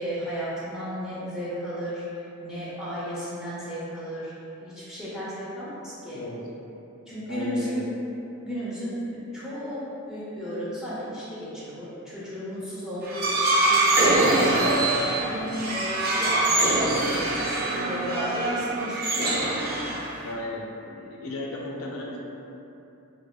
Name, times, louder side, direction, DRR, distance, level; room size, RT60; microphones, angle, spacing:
voice 1, 0.0-2.0 2.4-4.3 4.6-6.2 7.1-7.9 8.4-14.9 15.2-15.9 16.2-19.9, equal, 5° right, -10 dB, 0.7 m, -34 dB
voice 2, 6.0-6.4 7.3-7.8 20.2-22.2, left 1 dB, 70° left, -3 dB, 0.5 m, -35 dB
sound 1, 13.0-20.3, right 2 dB, 45° right, 0.5 m, -24 dB
4.7 x 2.1 x 2.3 m, 2.8 s
head